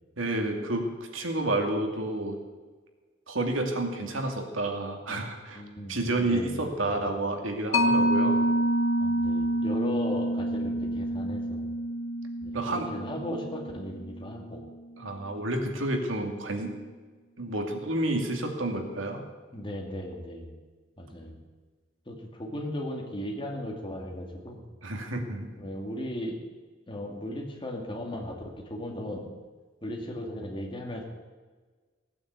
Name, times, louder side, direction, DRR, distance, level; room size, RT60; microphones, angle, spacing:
voice 1, 0.2-2.4 3.3-5.6 5.9-8.5 12.5-12.9 15.0-16.7 17.4-19.3 24.8-25.5, right 2 dB, 75° right, 3 dB, 2.5 m, -30 dB
voice 2, 5.1-6.6 6.9-7.0 9.0-11.6 12.4-14.6 19.5-20.5 21.0-21.4 22.1-24.6 25.6-26.4 26.9-29.2 29.8-31.1, left 1 dB, 25° left, 1 dB, 2.4 m, -37 dB
Mallet percussion, 7.7-14.8, equal, 75° left, 1.2 m, -28 dB
17.5 x 9.2 x 8.2 m, 1.4 s
head